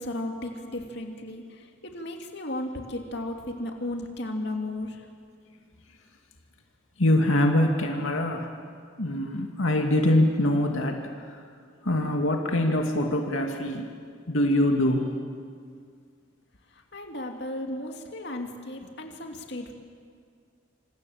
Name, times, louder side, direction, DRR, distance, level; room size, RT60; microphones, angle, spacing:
voice 1, 0.0-5.1 16.9-19.7, left 1 dB, 55° left, 2 dB, 2.6 m, -35 dB
voice 2, 7.0-8.5 9.0-11.4 11.8-13.9 14.3-15.1, left 1 dB, 85° left, 2 dB, 2.3 m, -24 dB
27.0 x 26.5 x 7.3 m, 2.1 s
head